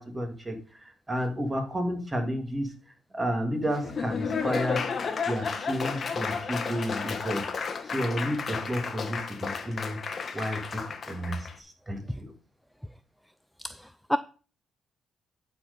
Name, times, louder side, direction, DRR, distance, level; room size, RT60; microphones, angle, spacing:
voice 1, 0.0-2.7 3.1-5.0 5.3-10.0 10.3-12.3, equal, 20° right, 2.2 m, -32 dB
Laughter / Applause, 3.7-11.5, left 5 dB, 45° left, 1.0 m, -32 dB
voice 2, 13.6-14.2, equal, ahead, 0.4 m, -29 dB
11.0 x 4.5 x 5.3 m
cardioid pair, 90°, 0 cm